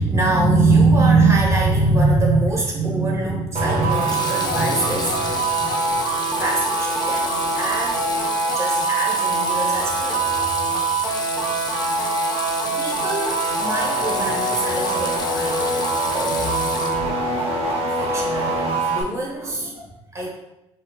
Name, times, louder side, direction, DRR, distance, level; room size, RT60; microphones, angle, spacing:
voice 1, 0.0-6.0 6.4-8.1 8.5-10.3 11.2-11.3 12.8-17.3 18.0-20.3, right 3 dB, 20° right, -2 dB, 0.9 m, -22 dB
Water tap faucet / Sink (filling or washing), 2.2-2.6 3.9-17.3, left 5 dB, 30° left, 0.4 m, -31 dB
sound 1, 3.5-19.0, right 3 dB, 50° right, 0.7 m, -23 dB
4.3 x 2.3 x 2.2 m, 0.91 s
supercardioid pair, 75°, 13 cm